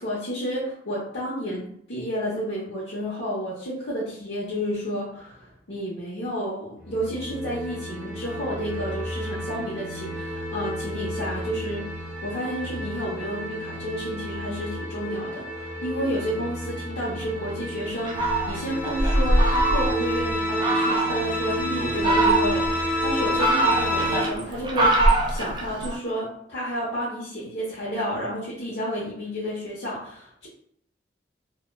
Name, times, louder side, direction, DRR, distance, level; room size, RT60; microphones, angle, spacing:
voice 1, 0.0-11.9 12.2-30.5, equal, 90° left, -7 dB, 0.7 m, -31 dB
sound 1, 6.8-24.2, equal, 10° left, 1.2 m, -30 dB
Fowl, 18.1-20.1 20.6-21.2 21.8-22.7 23.2-26.0, right 2 dB, 25° right, 0.4 m, -23 dB
2.2 x 2.1 x 3.1 m, 0.69 s
head